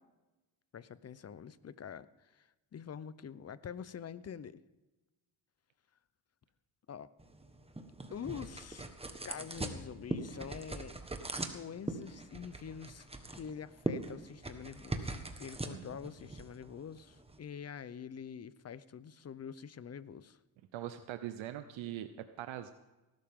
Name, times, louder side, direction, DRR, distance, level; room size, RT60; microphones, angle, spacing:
voice 1, 0.7-4.6 6.9-7.1 8.1-8.9 9.2-11.0 11.4-20.4, left 7 dB, 35° left, 17 dB, 0.7 m, -46 dB
sound 1, 7.2-17.4, right 2 dB, 10° right, 1.4 m, -42 dB
voice 2, 20.7-22.7, right 12 dB, 80° right, 9 dB, 0.9 m, -42 dB
18.5 x 12.0 x 3.7 m, 1.1 s
cardioid pair, 90°, 47 cm